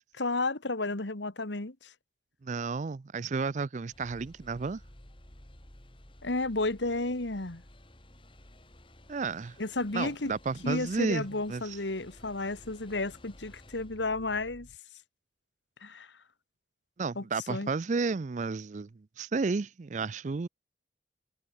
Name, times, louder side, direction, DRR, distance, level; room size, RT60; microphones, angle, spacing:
voice 1, 0.2-1.9 6.2-7.6 9.6-10.3 10.6-14.7 15.8-16.1 17.2-17.7, left 2 dB, 85° left, 2.0 m, -32 dB
voice 2, 2.4-4.8 9.1-9.6 9.9-11.8 17.0-20.5, right 4 dB, 40° right, 0.4 m, -32 dB
sound 1, 3.9-14.8, left 1 dB, 30° left, 3.6 m, -54 dB
head